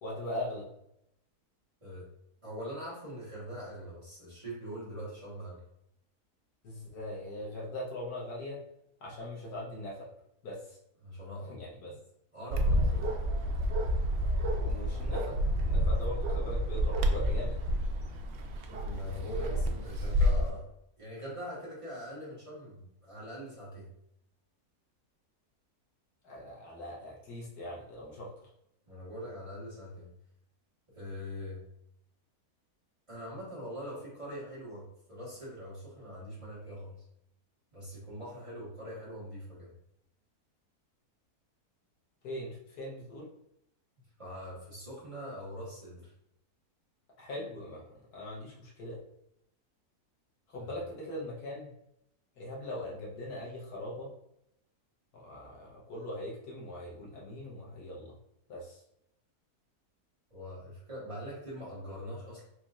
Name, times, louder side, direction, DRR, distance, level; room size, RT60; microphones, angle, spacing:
voice 1, 0.0-0.7 6.6-8.6 9.0-10.0 10.4-10.8 11.5-12.0 14.5-15.3 15.6-17.6 26.2-28.3 42.2-43.3 47.2-49.0 50.5-51.7 52.4-54.1 55.1-58.2 58.5-58.8, left 1 dB, 85° left, -3 dB, 1.5 m, -41 dB
voice 2, 2.4-5.6 11.0-11.6 12.3-13.2 18.7-20.7 21.0-23.9 28.9-30.1 30.9-31.6 33.1-36.9 37.7-39.7 44.2-46.1 50.6-50.7 60.3-62.4, equal, 20° right, -9 dB, 1.3 m, -42 dB
Bark, 12.5-20.5, equal, 80° right, 0.6 m, -29 dB
4.1 x 3.0 x 2.4 m, 0.77 s
omnidirectional pair, 1.6 m